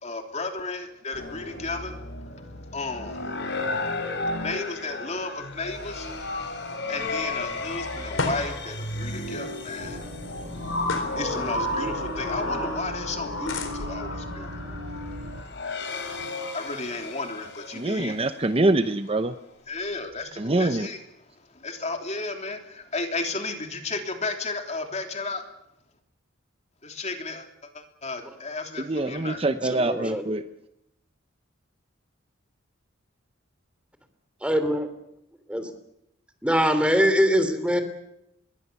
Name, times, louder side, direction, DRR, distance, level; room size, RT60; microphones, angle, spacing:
voice 1, 0.0-1.9 2.7-3.2 4.4-6.1 6.9-10.0 10.3-10.5 11.1-14.6 15.1-15.4 16.5-18.2 19.7-21.0 21.5-25.4 26.8-27.5 27.7-29.4, left 3 dB, 35° left, 4 dB, 3.3 m, -33 dB
sound 1, 1.1-18.4, left 2 dB, 60° left, 4.7 m, -33 dB
sound 2, 5.9-17.1, left 2 dB, 85° left, 4.1 m, -40 dB
sound 3, 9.8-15.4, equal, 60° right, 4.5 m, -39 dB
voice 2, 17.7-19.3 20.4-20.9 28.8-30.4, right 2 dB, 30° right, 10 dB, 0.9 m, -24 dB
voice 3, 29.5-30.4 34.4-34.9 35.5-35.7 36.4-37.8, equal, 5° right, 9 dB, 3.1 m, -23 dB
26.5 x 22.0 x 7.0 m, 0.82 s
head